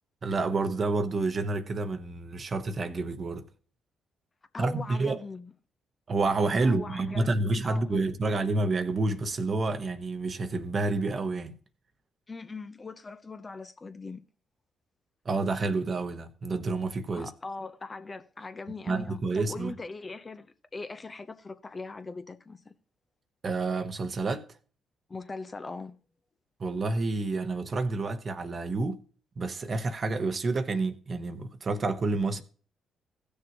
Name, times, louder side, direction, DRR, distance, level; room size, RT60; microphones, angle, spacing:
voice 1, 0.2-3.5 4.6-5.2 6.1-11.5 15.2-17.3 18.9-19.7 23.4-24.5 26.6-29.0 29.4-32.4, right 3 dB, 45° right, 1.1 m, -29 dB
voice 2, 4.5-5.5 6.6-8.1 12.3-14.2 17.1-22.7 25.1-26.0, left 3 dB, 35° left, 0.8 m, -41 dB
16.5 x 6.6 x 3.0 m
hypercardioid pair, 45°, 0 cm